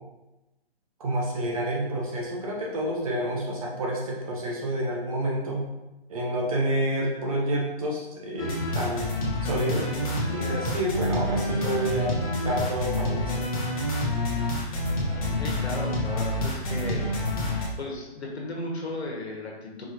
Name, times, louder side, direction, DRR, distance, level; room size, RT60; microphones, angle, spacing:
voice 1, 1.0-5.6 6.1-9.1 9.4-9.9 10.3-12.2 12.4-13.5, right 1 dB, 35° right, -2 dB, 0.8 m, -29 dB
sound 1, 8.4-17.7, left 1 dB, 35° left, 0.9 m, -28 dB
voice 2, 15.4-17.0 17.8-19.9, left 2 dB, 85° left, -2 dB, 1.3 m, -35 dB
4.7 x 2.6 x 3.0 m, 0.99 s
hypercardioid pair, 150°, 32 cm